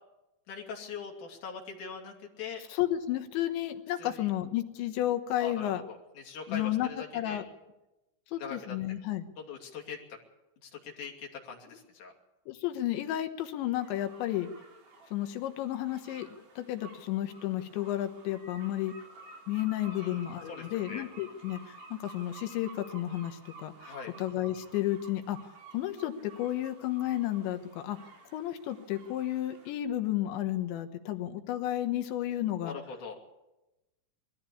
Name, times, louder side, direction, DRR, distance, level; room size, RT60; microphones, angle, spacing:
voice 1, 0.5-2.6 4.0-4.3 5.4-7.4 8.4-8.8 9.4-10.2 10.6-12.1 19.9-21.1 23.8-24.1 32.6-33.2, left 5 dB, 45° left, -1 dB, 3.8 m, -42 dB
voice 2, 2.7-5.8 6.5-7.4 8.3-9.3 12.5-14.5 15.1-16.3 16.6-18.9 19.5-28.0 28.3-32.8, left 13 dB, 80° left, 8 dB, 3.4 m, -32 dB
sound 1, 13.8-29.7, right 3 dB, 65° right, 6.1 m, -52 dB
21.5 x 14.5 x 8.5 m, 0.99 s
omnidirectional pair, 5.2 m